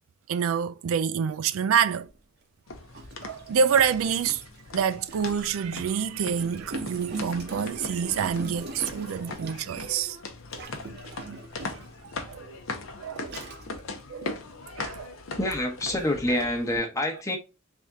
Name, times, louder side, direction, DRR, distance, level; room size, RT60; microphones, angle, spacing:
voice 1, 0.3-2.1 3.2-4.4 4.7-10.2 12.0-12.6 13.0-13.5 14.1-14.3 14.8-15.2, right 7 dB, 90° right, 0.4 m, -27 dB
Gurgling, 2.1-2.2 2.9-5.7 6.3-9.9 10.5-12.0 12.7-12.8 13.2-13.8, right 3 dB, 55° right, 0.7 m, -40 dB
sound 1, 2.7-16.8, left 3 dB, 80° left, 0.7 m, -40 dB
voice 2, 15.4-17.4, left 1 dB, 15° left, 0.8 m, -27 dB
3.5 x 2.7 x 3.5 m
head